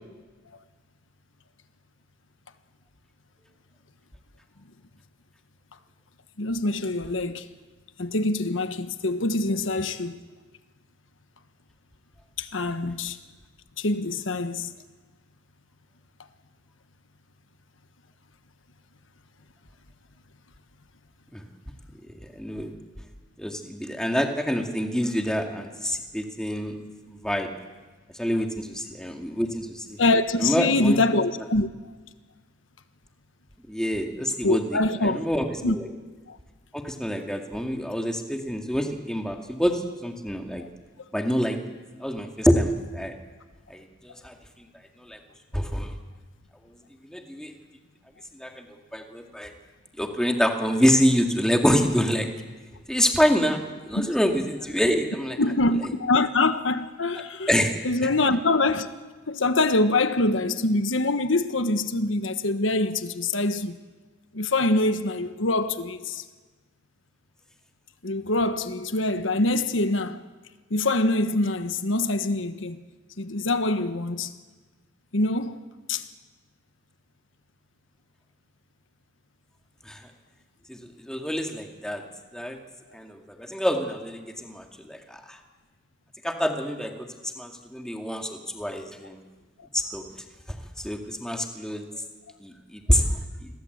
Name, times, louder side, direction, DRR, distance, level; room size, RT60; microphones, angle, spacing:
voice 1, 6.4-7.5 8.0-10.2 12.4-13.2 13.8-14.7 30.0-31.7 34.4-35.2 35.6-35.8 36.3-36.4 40.6-40.7 53.9-54.1 55.4-57.5 57.8-58.9 59.3-63.8 64.3-66.2 68.0-70.2 70.7-72.8 73.2-74.3 75.1-75.6 75.9-76.0 89.6-89.7, left 2 dB, 80° left, 1.3 m, -24 dB
voice 2, 22.3-22.7 23.4-26.7 27.1-27.5 28.2-30.0 30.4-31.0 33.7-35.9 36.7-40.6 41.1-41.6 42.0-43.1 43.7-44.3 45.0-45.2 45.5-45.9 47.1-47.5 48.4-48.7 48.9-49.5 50.0-52.3 52.9-53.6 53.9-55.4 57.5-58.1 79.9-80.0 80.7-82.0 82.3-82.6 82.9-85.4 86.2-89.2 89.7-90.1 90.5-91.9 92.4-93.5, equal, 5° left, 2.1 m, -26 dB
29.0 x 22.0 x 8.1 m
head